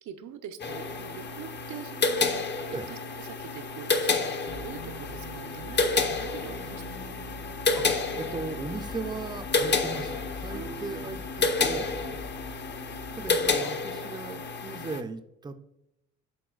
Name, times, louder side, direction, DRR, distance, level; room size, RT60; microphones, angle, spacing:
voice 1, 0.0-7.2 10.5-11.1, right 8 dB, 80° right, 8 dB, 0.7 m, -44 dB
sound 1, 0.6-15.0, left 4 dB, 35° left, 0.7 m, -30 dB
sound 2, 4.5-13.6, left 3 dB, 75° left, 1.0 m, -43 dB
voice 2, 8.2-12.0 13.2-15.6, right 4 dB, 15° right, 9 dB, 0.5 m, -37 dB
10.0 x 4.2 x 2.4 m, 0.84 s
cardioid pair, 90°, 30 cm